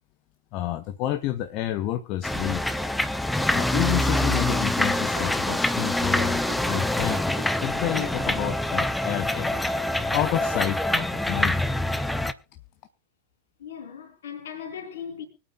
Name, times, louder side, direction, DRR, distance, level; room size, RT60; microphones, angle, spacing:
voice 1, 0.5-2.6 3.5-9.6 10.1-11.6, left 13 dB, 40° left, 0.8 m, -29 dB
sound 1, 2.2-12.3, left 1 dB, 5° left, 0.7 m, -25 dB
sound 2, 3.6-8.5 9.2-9.3, right 12 dB, 55° right, 1.4 m, -42 dB
voice 2, 13.6-15.2, left 7 dB, 60° left, 3.3 m, -38 dB
25.0 x 8.8 x 2.3 m
figure-of-eight pair, 90°, 0 cm